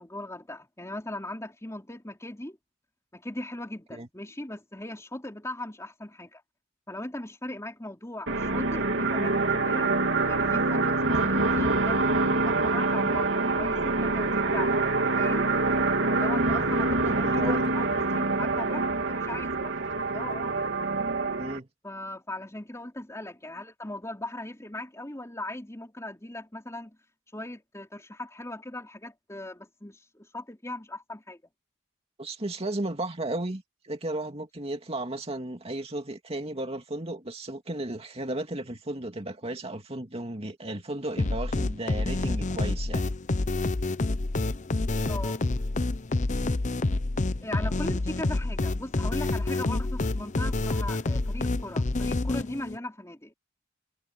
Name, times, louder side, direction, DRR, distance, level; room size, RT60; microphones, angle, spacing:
voice 1, 0.0-2.6 3.1-6.4 6.9-9.9 10.3-14.8 15.2-15.5 16.1-19.8 20.1-20.5 21.8-27.0 27.3-31.4 45.1-45.4 47.4-53.3, left 1 dB, 15° left, 3.7 m, -39 dB
sound 1, 8.3-21.6, right 3 dB, 75° right, 2.9 m, -25 dB
voice 2, 16.7-17.7 21.4-21.7 32.2-43.0 47.9-48.0, right 1 dB, 30° right, 2.5 m, -34 dB
sound 2, 41.2-52.8, left 2 dB, 40° left, 0.8 m, -28 dB
head